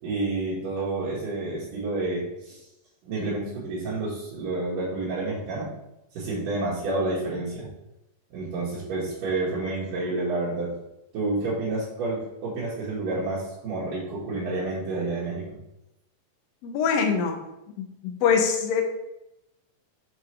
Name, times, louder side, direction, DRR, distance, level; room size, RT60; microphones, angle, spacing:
voice 1, 0.0-2.6 3.1-5.7 6.1-7.7 8.3-10.8 11.1-15.6, right 2 dB, 85° right, -9 dB, 3.2 m, -29 dB
voice 2, 16.6-17.4 17.8-18.8, left 6 dB, 75° left, 4 dB, 1.5 m, -24 dB
7.3 x 4.2 x 3.2 m, 0.87 s
omnidirectional pair, 3.7 m